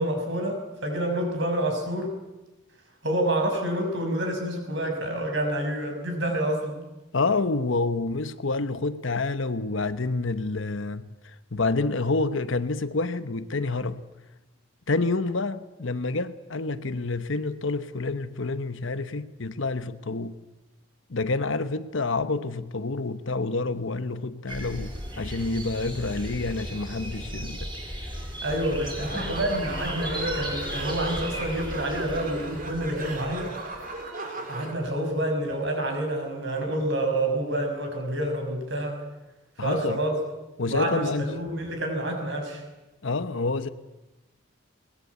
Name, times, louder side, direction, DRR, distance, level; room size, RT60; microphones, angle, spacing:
voice 1, 0.0-2.2 3.0-6.9 28.4-33.5 34.5-39.0 39.6-40.1 40.7-42.6, right 1 dB, 60° right, 6.0 m, -28 dB
voice 2, 7.1-11.1 11.5-14.0 14.9-20.4 21.1-27.7 29.1-29.3 39.6-40.0 40.6-41.3 43.0-43.7, left 3 dB, 65° left, 1.0 m, -28 dB
sound 1, 24.5-33.9, equal, 20° right, 7.7 m, -36 dB
sound 2, 28.4-34.7, right 2 dB, 40° right, 3.4 m, -36 dB
22.0 x 20.0 x 8.3 m
head